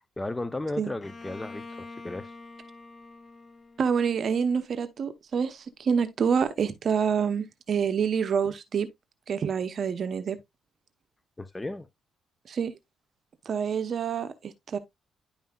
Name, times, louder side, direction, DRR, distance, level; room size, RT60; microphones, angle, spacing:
voice 1, 0.2-2.3 11.4-11.9, left 2 dB, 15° left, 0.6 m, -34 dB
Bowed string instrument, 1.0-4.8, left 3 dB, 30° left, 1.2 m, -46 dB
voice 2, 3.8-8.9 9.3-10.4 12.5-12.7 13.5-14.8, right 6 dB, 55° right, 0.9 m, -27 dB
10.5 x 5.4 x 2.4 m
cardioid pair, 90°, 0 cm